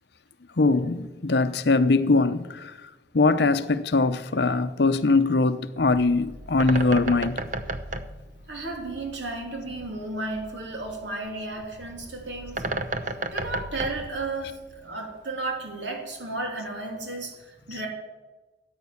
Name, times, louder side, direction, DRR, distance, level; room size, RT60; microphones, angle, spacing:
voice 1, 0.6-7.4, left 3 dB, 60° left, 0.7 m, -22 dB
Bird, 5.8-14.9, right 2 dB, 40° right, 0.7 m, -34 dB
voice 2, 7.9-12.6 13.3-17.9, right 2 dB, 75° right, 3.1 m, -34 dB
14.0 x 9.1 x 7.1 m
head